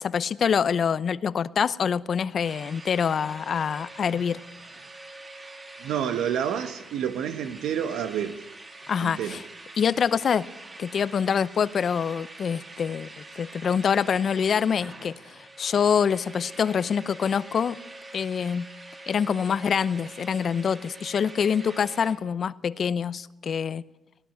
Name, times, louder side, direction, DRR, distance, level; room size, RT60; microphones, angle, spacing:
voice 1, 0.0-4.4 8.9-9.4 9.8-10.5 10.8-17.8 18.1-18.7 19.1-23.8, left 7 dB, 55° left, 0.8 m, -25 dB
sound 1, 2.4-22.1, right 2 dB, 25° right, 4.7 m, -45 dB
voice 2, 5.8-8.4 9.0-9.4, right 9 dB, 85° right, 1.4 m, -29 dB
19.0 x 18.0 x 9.5 m
cardioid pair, 90°, 0 cm